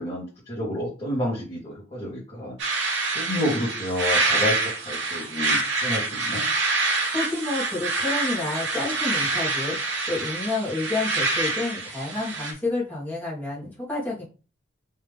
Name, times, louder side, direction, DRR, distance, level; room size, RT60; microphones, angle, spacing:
voice 1, 0.0-2.5 3.1-6.4, left 1 dB, 30° left, -8 dB, 1.7 m, -30 dB
sound 1, 2.6-12.5, right 3 dB, 85° right, 1.1 m, -26 dB
voice 2, 7.1-14.2, left 2 dB, 10° left, -6 dB, 1.6 m, -29 dB
3.4 x 3.1 x 3.4 m, 0.35 s
head